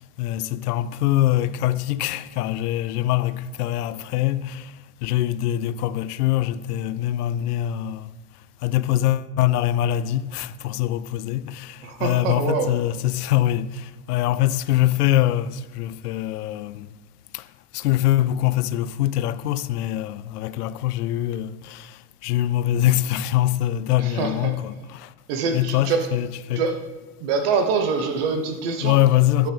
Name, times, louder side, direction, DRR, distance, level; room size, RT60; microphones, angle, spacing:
voice 1, 0.2-4.7 5.0-8.1 8.6-16.9 17.3-17.4 17.7-25.1 25.5-26.6 28.8-29.5, left 13 dB, 90° left, 0.6 m, -23 dB
voice 2, 11.8-12.7 24.0-24.5 25.3-26.1 26.6-26.8 27.2-29.0 29.4-29.5, right 5 dB, 40° right, 0.9 m, -24 dB
10.5 x 9.0 x 3.4 m
supercardioid pair, 175°, 45 cm